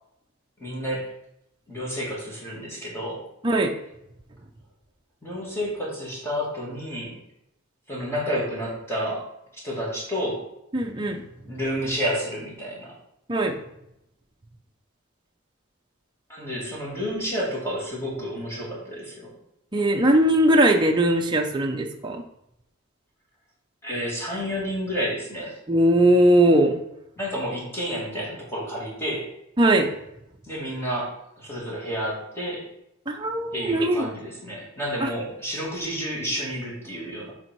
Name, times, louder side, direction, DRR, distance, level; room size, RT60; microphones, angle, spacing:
voice 1, 0.6-1.1 1.7-3.2 5.2-7.2 7.9-9.2 9.6-10.4 11.4-12.9 16.3-19.3 23.8-25.6 27.2-29.3 30.4-32.6 33.5-37.3, equal, 10° left, -5 dB, 2.3 m, -30 dB
voice 2, 10.7-11.2 13.3-13.5 19.7-22.2 25.7-26.8 29.6-29.9 33.1-34.1 35.0-35.1, right 1 dB, 20° right, 2 dB, 0.6 m, -20 dB
6.9 x 4.4 x 4.5 m, 0.82 s
head